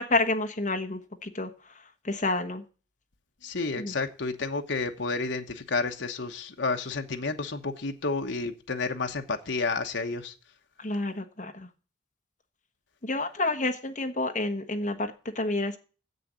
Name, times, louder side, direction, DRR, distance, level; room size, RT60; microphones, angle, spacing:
voice 1, 0.0-1.5 2.0-2.6 3.8-3.9 10.8-11.7 13.0-15.8, left 2 dB, 40° left, 6 dB, 1.2 m, -29 dB
voice 2, 3.4-10.3, left 3 dB, 65° left, 5 dB, 1.1 m, -31 dB
7.8 x 6.8 x 8.1 m, 0.36 s
head